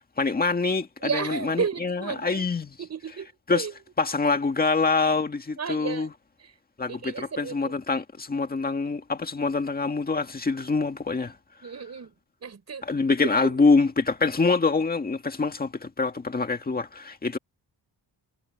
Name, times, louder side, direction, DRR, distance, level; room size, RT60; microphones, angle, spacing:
voice 1, 0.2-2.7 3.5-3.7 4.0-6.1 6.8-11.3 12.8-17.4, left 4 dB, 20° left, 1.8 m, -25 dB
voice 2, 1.0-2.5 2.8-3.7 5.6-6.1 6.4-6.5 6.9-7.7 11.6-12.1 12.4-12.8 13.4-13.6, right 6 dB, 40° right, 5.9 m, -33 dB
wide cardioid pair, 165°, 40 cm